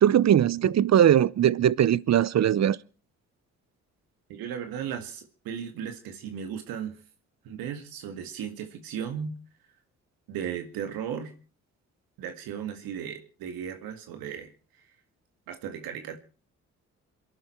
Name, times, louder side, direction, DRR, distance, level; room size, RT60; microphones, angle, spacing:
voice 1, 0.0-2.8, right 10 dB, 50° right, 0.8 m, -20 dB
voice 2, 4.3-7.0 7.4-9.3 10.3-11.3 12.2-14.5 15.5-16.2, right 8 dB, 80° right, 1.9 m, -36 dB
28.0 x 11.0 x 4.5 m
hypercardioid pair, 45°, 35 cm